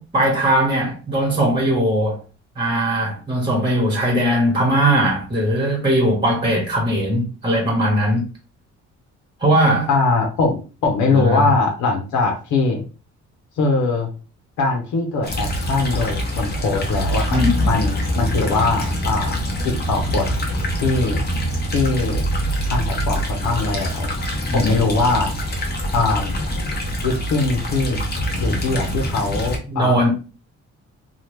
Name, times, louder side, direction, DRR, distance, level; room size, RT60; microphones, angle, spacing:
voice 1, 0.0-2.2 2.5-8.2 9.4-9.9 11.1-11.5 17.3-17.7 24.5-24.9 29.7-30.1, right 1 dB, 15° right, 1.1 m, -19 dB
voice 2, 9.9-12.8 13.6-14.1 14.6-19.4 19.6-20.3 20.8-21.2 21.7-22.2 22.7-24.1 24.5-25.3 25.9-26.4 27.0-28.0 28.4-30.0, left 3 dB, 90° left, 0.7 m, -21 dB
sound 1, 15.2-29.6, equal, 35° left, 0.9 m, -24 dB
2.8 x 2.3 x 3.3 m
cardioid pair, 100°, 29 cm